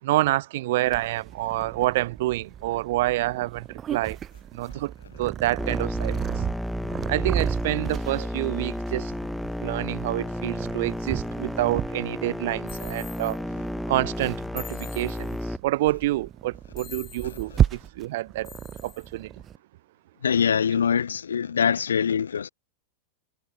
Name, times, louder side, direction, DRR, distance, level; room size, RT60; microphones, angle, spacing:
voice 1, 0.0-4.2 4.5-6.3 7.1-9.1 9.6-13.4 13.9-18.5 18.8-19.3, right 17 dB, 55° right, 4.8 m, -28 dB
Purr, 0.9-19.6, right 9 dB, 25° right, 5.1 m, -34 dB
sound 1, 5.6-15.6, left 1 dB, 5° left, 2.2 m, -32 dB
sound 2, 12.7-13.4 14.6-15.4 16.8-17.5 18.4-19.1, left 10 dB, 25° left, 5.0 m, -44 dB
voice 2, 20.2-22.5, left 7 dB, 70° left, 2.6 m, -23 dB
figure-of-eight pair, 90°, 0 cm